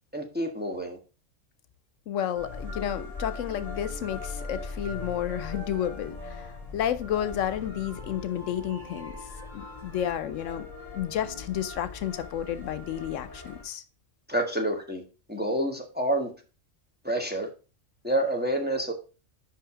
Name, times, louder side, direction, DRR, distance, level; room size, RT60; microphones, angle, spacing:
voice 1, 0.1-1.0 14.3-15.0 15.3-16.3 17.0-17.5 18.0-18.9, right 1 dB, 10° right, 1.2 m, -28 dB
voice 2, 2.1-9.2 9.5-10.7 10.9-13.8, left 10 dB, 80° left, 1.0 m, -31 dB
sound 1, 2.3-13.6, left 3 dB, 30° left, 2.2 m, -40 dB
5.8 x 5.3 x 4.9 m
omnidirectional pair, 1.3 m